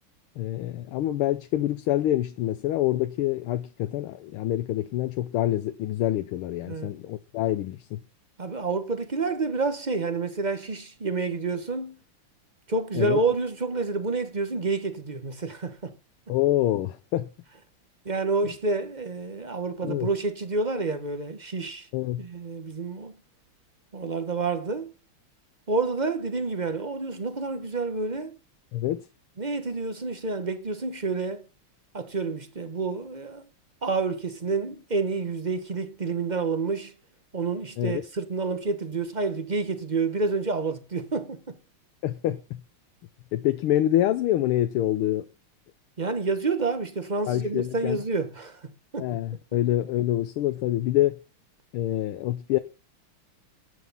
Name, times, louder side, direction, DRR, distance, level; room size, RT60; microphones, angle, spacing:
voice 1, 0.4-8.0 12.9-13.2 16.3-17.3 18.4-18.5 19.8-20.1 21.9-22.2 28.7-29.0 37.8-38.0 42.0-42.6 43.3-45.3 47.3-48.0 49.0-51.1 51.7-52.6, left 13 dB, 80° left, 1.6 m, -26 dB
voice 2, 8.4-12.0 12.7-15.9 18.0-21.9 22.2-23.1 23.9-24.9 25.7-28.3 29.4-31.4 31.9-33.5 33.8-36.9 37.3-41.6 46.0-49.1, right 3 dB, 30° right, 0.8 m, -29 dB
11.0 x 7.9 x 5.6 m
omnidirectional pair, 2.4 m